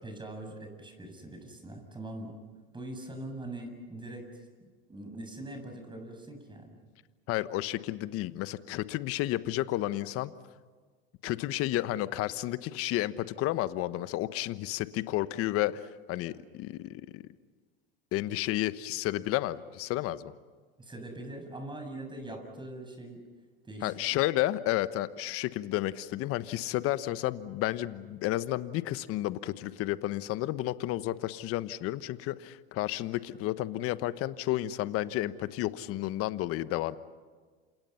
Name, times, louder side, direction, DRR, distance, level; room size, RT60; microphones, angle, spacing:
voice 1, 0.0-2.4 2.7-4.5 4.9-6.7 20.8-23.2 23.6-24.2, right 1 dB, 15° right, 4 dB, 7.4 m, -42 dB
voice 2, 7.3-10.3 11.2-17.2 18.1-20.3 23.8-37.0, left 15 dB, 50° left, 14 dB, 1.2 m, -31 dB
29.5 x 27.5 x 5.8 m, 1.5 s
hypercardioid pair, 95°, 30 cm